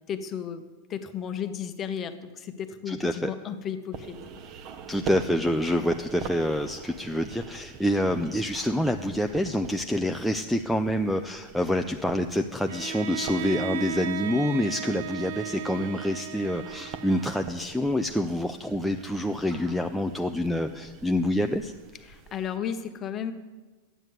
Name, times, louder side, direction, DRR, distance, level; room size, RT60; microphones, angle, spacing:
voice 1, 0.1-0.6 0.9-4.2 22.0-23.3, left 8 dB, 25° left, 9 dB, 0.9 m, -34 dB
voice 2, 2.9-3.3 4.9-21.7, left 1 dB, ahead, 3 dB, 0.4 m, -27 dB
sound 1, 3.9-22.6, right 6 dB, 40° right, 0.9 m, -44 dB
Bowed string instrument, 12.7-17.7, right 9 dB, 70° right, 0.7 m, -36 dB
12.5 x 9.1 x 7.9 m, 1.2 s
supercardioid pair, 160°, 0 cm